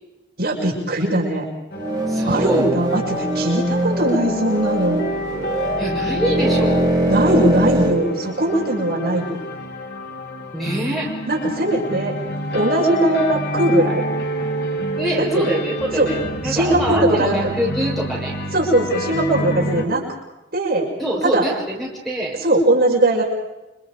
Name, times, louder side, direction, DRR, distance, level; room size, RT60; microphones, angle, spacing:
voice 1, 0.4-1.5 2.2-5.0 7.1-9.4 11.3-12.1 12.5-14.0 15.2-15.5 16.0-16.1 16.4-17.4 18.5-20.0 20.5-20.9 21.3-21.4 22.4-23.2, right 1 dB, 50° right, -2 dB, 6.5 m, -19 dB
sound 1, 1.7-19.8, equal, 55° left, 2.6 m, -28 dB
sound 2, 1.8-8.0, right 1 dB, 20° right, 2.7 m, -22 dB
voice 2, 2.1-2.7 5.8-7.0 10.5-11.2 15.0-18.3 21.0-22.4, equal, ahead, -2 dB, 5.5 m, -25 dB
29.5 x 26.0 x 5.2 m, 0.98 s
head